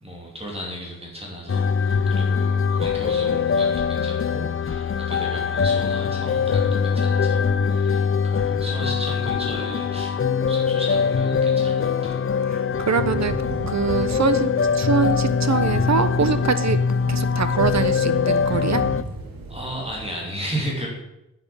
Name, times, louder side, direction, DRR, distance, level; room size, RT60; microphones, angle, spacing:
voice 1, 0.0-10.1 10.5-12.2 19.5-20.9, equal, 15° right, -2 dB, 2.9 m, -34 dB
sound 1, 1.5-19.0, left 6 dB, 40° left, 0.5 m, -22 dB
voice 2, 12.5-13.4 13.7-16.8 17.1-18.8, right 5 dB, 50° right, 12 dB, 1.0 m, -23 dB
Thunder / Rain, 12.7-20.1, right 2 dB, 80° right, 2.4 m, -35 dB
10.0 x 9.0 x 7.0 m, 0.88 s
wide cardioid pair, 135°, 34 cm